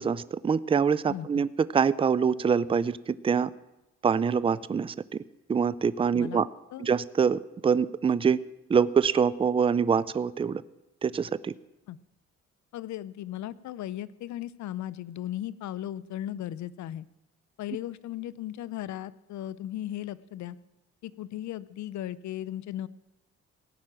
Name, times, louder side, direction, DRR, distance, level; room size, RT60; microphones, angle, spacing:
voice 1, 0.0-3.5 4.0-4.9 5.5-6.5 6.8-8.4 8.7-10.6 11.0-11.5, right 6 dB, 20° right, 17 dB, 0.4 m, -25 dB
voice 2, 1.1-1.5 6.1-6.9 11.9-12.0 12.7-17.0 17.6-20.6 21.0-22.9, left 12 dB, 70° left, 18 dB, 0.6 m, -37 dB
17.0 x 5.9 x 8.9 m, 0.96 s
cardioid pair, 90°, 30 cm